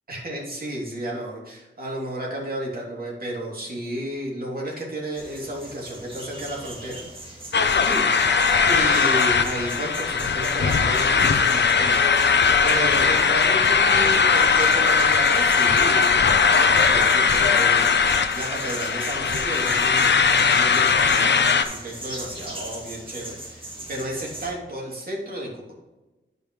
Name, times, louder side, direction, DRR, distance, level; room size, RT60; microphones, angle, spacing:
voice 1, 0.1-7.0 7.7-25.6, right 1 dB, 50° right, -3 dB, 2.8 m, -32 dB
sound 1, 5.2-24.5, right 1 dB, 25° right, 2.2 m, -39 dB
sound 2, 7.5-21.6, left 5 dB, 65° left, 0.7 m, -19 dB
12.0 x 5.3 x 3.2 m, 1.1 s
wide cardioid pair, 120°, 20 cm